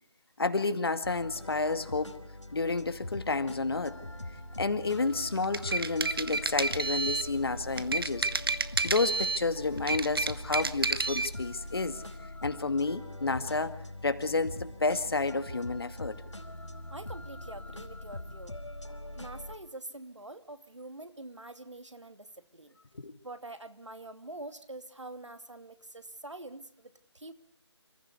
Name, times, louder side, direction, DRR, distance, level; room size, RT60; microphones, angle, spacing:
voice 1, 0.4-2.2 2.5-4.2 4.6-8.3 8.8-12.0 12.4-13.8 14.0-16.2 22.9-23.1, left 3 dB, 55° left, 10 dB, 2.1 m, -30 dB
sound 1, 1.0-19.5, left 1 dB, 85° left, 4.8 m, -43 dB
sound 2, 5.4-7.3 7.8-9.5 9.8-11.3, right 3 dB, 50° right, 1.2 m, -30 dB
voice 2, 16.9-18.6 19.1-22.8 23.2-27.3, right 2 dB, 85° right, 9 dB, 2.6 m, -45 dB
28.5 x 15.0 x 8.2 m, 0.63 s
figure-of-eight pair, 165°, 15 cm